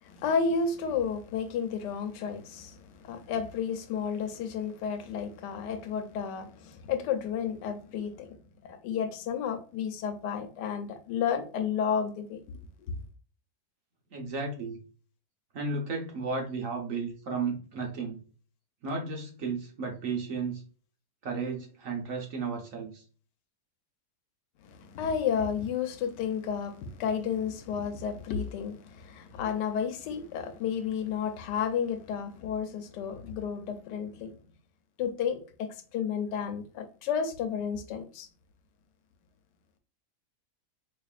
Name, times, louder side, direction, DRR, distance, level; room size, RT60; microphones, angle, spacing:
voice 1, 0.0-8.4 8.6-13.0 24.6-34.3 35.0-38.3, left 7 dB, 85° left, 1.2 m, -32 dB
voice 2, 14.1-14.8 15.5-18.2 18.8-20.6 21.2-23.0, right 4 dB, 55° right, 1.2 m, -33 dB
4.1 x 3.2 x 2.3 m
omnidirectional pair, 1.8 m